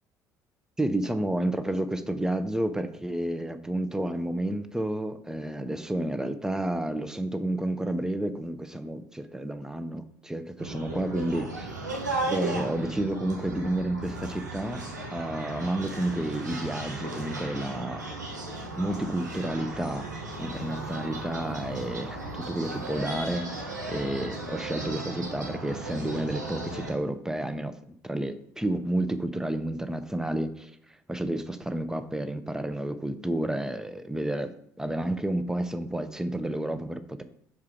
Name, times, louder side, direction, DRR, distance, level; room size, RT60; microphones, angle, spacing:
voice 1, 0.8-11.7 12.3-18.0 18.8-30.7 31.1-34.5 34.8-37.2, right 1 dB, 5° right, 11 dB, 0.7 m, -31 dB
sound 1, 10.6-26.9, right 2 dB, 85° right, 1.1 m, -36 dB
6.0 x 4.8 x 4.4 m, 0.67 s
figure-of-eight pair, 55°, 9 cm